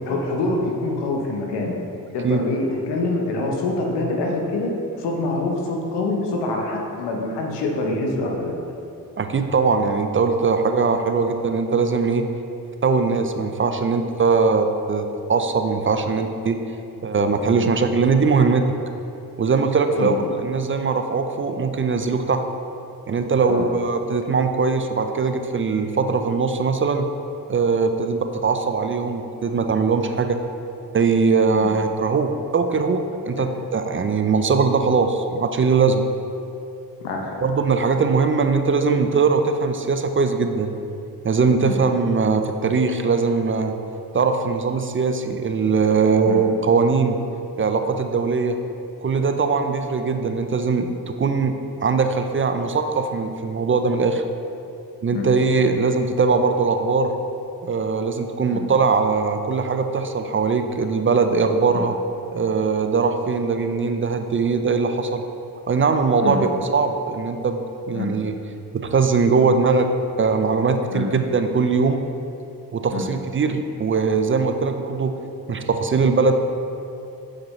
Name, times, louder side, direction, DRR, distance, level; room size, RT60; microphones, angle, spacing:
voice 1, 0.1-1.7 2.1-8.6 17.5-17.6 20.0-20.1 23.5-23.7 31.6-31.7 33.4-33.5 37.0-37.4 41.6-41.8 46.3-46.4 55.1-55.3 58.5-58.6 61.7-61.8 66.2-66.4 67.9-68.1 70.9-71.1 72.9-73.0, left 2 dB, 85° left, 1 dB, 0.9 m, -25 dB
voice 2, 9.2-12.3 12.8-16.6 17.0-18.7 19.4-22.5 23.1-27.1 27.5-30.4 30.9-36.0 37.4-40.7 41.2-43.7 44.1-47.2 47.6-48.6 49.0-54.2 55.0-57.2 57.6-62.0 62.3-65.3 65.7-68.3 68.7-72.1 72.7-75.2 75.5-76.3, right 4 dB, 30° right, 7 dB, 0.5 m, -21 dB
7.1 x 5.0 x 3.2 m, 2.8 s
supercardioid pair, 45°, 41 cm